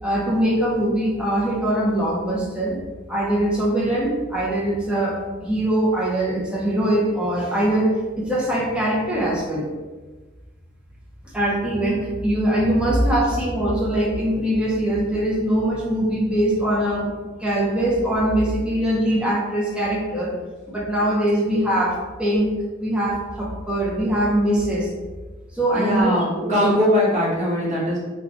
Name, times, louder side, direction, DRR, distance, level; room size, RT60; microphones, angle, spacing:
voice 1, 0.0-2.8 3.1-7.9 8.2-9.7 11.3-17.1 17.4-20.3 20.7-22.5 22.8-24.9 25.5-26.1 26.4-26.8, right 1 dB, 5° right, -5 dB, 0.7 m, -22 dB
voice 2, 25.7-28.0, left 1 dB, 35° right, -6 dB, 1.1 m, -21 dB
4.0 x 2.4 x 2.9 m, 1.3 s
head